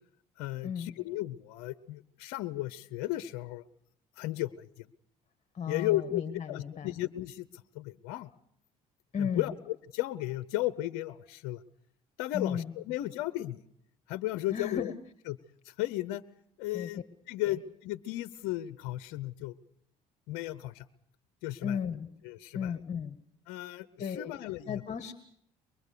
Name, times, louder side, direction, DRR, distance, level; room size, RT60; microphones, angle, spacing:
voice 1, 0.4-3.6 4.2-4.9 5.7-6.2 6.5-8.3 9.2-11.6 12.2-13.6 14.1-14.9 15.3-15.4 15.6-16.2 16.6-17.0 17.3-19.5 20.3-20.9 21.4-21.8 22.2-22.8 23.5-24.8, left 16 dB, 75° left, 14 dB, 0.8 m, -35 dB
voice 2, 5.5-6.9 9.1-9.5 12.3-12.7 14.5-14.9 16.7-16.9 21.6-22.1 22.5-23.2 24.0-24.3 24.7-25.1, left 7 dB, 40° left, 10 dB, 1.7 m, -34 dB
24.0 x 22.5 x 6.9 m, 0.72 s
hypercardioid pair, 65°, 18 cm